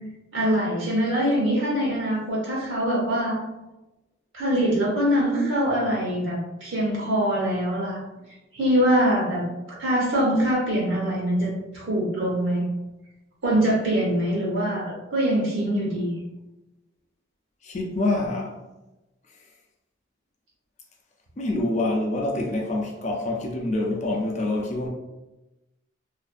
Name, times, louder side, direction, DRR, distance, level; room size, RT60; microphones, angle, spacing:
voice 1, 0.3-3.4 4.3-8.0 8.5-9.4 9.8-12.6 13.4-16.1, equal, 85° right, 1.1 m, -23 dB
voice 2, 17.6-18.6 21.4-24.9, left 2 dB, 35° left, 0.4 m, -26 dB
2.5 x 2.4 x 2.4 m
head